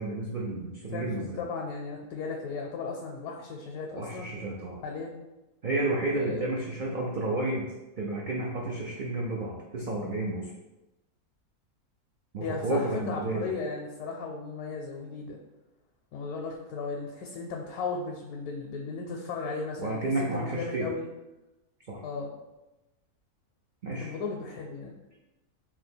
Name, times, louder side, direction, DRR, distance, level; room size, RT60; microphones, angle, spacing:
voice 1, 0.0-1.4 3.9-4.8 5.6-7.7 8.0-10.5 12.3-13.5 19.8-20.9 21.9-22.0 23.8-24.1, right 2 dB, 90° right, -3 dB, 0.4 m, -31 dB
voice 2, 0.9-4.3 4.8-5.2 6.1-6.6 12.4-15.4 16.1-21.0 22.0-22.3 24.0-25.0, left 4 dB, 85° left, 0 dB, 1.1 m, -36 dB
2.9 x 2.9 x 4.3 m, 1.0 s
omnidirectional pair, 1.6 m